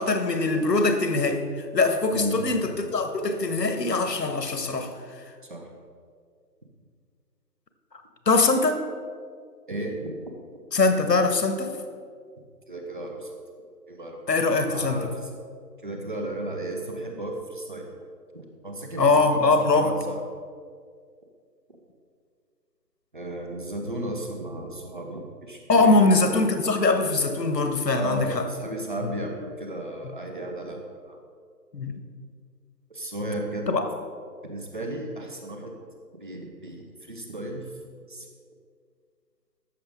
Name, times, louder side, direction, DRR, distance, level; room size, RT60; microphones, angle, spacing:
voice 1, 0.0-5.2 7.9-8.0 8.3-8.8 10.7-11.8 14.3-15.1 19.0-19.9 25.7-28.4 31.7-31.9 33.7-33.8, left 3 dB, 75° left, 7 dB, 1.3 m, -22 dB
voice 2, 2.1-2.7 5.5-5.7 9.7-10.1 12.7-13.4 13.9-15.3 15.8-17.9 18.6-20.2 23.1-26.2 27.9-30.8 31.0-31.2 32.9-33.7 34.4-35.8 36.2-37.7 38.1-38.3, right 1 dB, 30° right, 2 dB, 1.0 m, -34 dB
14.0 x 6.6 x 3.6 m, 2.1 s
figure-of-eight pair, 165°, 49 cm